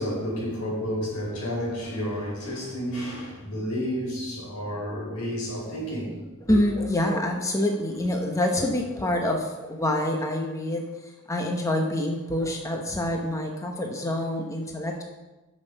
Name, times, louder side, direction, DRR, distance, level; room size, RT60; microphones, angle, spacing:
voice 1, 0.0-6.2 6.5-6.6, equal, 80° left, 4.2 m, -31 dB
voice 2, 6.5-15.0, left 1 dB, 15° left, 1.0 m, -26 dB
9.4 x 6.5 x 6.7 m
head